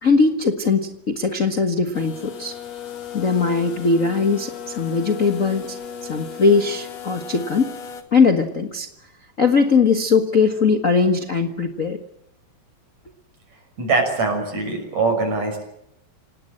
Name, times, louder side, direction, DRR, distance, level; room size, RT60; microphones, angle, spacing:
voice 1, 0.0-2.5 3.1-7.7 8.1-8.9 9.4-12.0, left 4 dB, 70° left, 6 dB, 0.7 m, -20 dB
sound 1, 1.9-8.0, left 7 dB, 50° left, 3.0 m, -36 dB
voice 2, 13.8-15.6, right 3 dB, 50° right, 5 dB, 7.3 m, -22 dB
28.0 x 18.5 x 7.7 m, 0.83 s
omnidirectional pair, 4.1 m